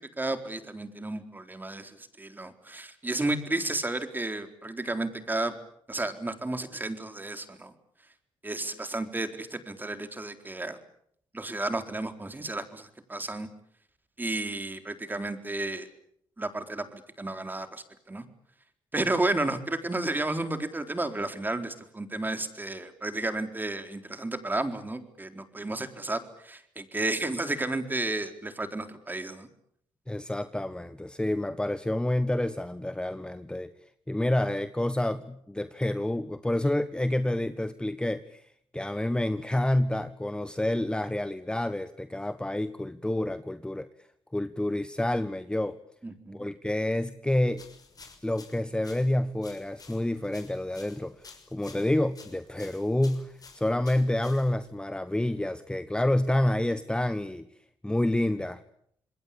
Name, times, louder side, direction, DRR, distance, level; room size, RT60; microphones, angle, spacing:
voice 1, 0.2-5.5 5.9-7.7 8.4-10.8 11.3-13.5 14.2-15.9 16.4-18.2 18.9-29.5 46.0-46.4, right 2 dB, 20° right, 8 dB, 4.0 m, -32 dB
voice 2, 30.1-33.7 34.1-38.4 38.7-43.9 44.3-45.8 46.3-47.7 48.2-57.5 57.8-58.6, left 1 dB, 10° left, 11 dB, 1.4 m, -28 dB
sound 1, 47.5-54.8, left 4 dB, 45° left, 6.4 m, -52 dB
27.5 x 21.0 x 8.8 m, 0.67 s
supercardioid pair, 60°, 9 cm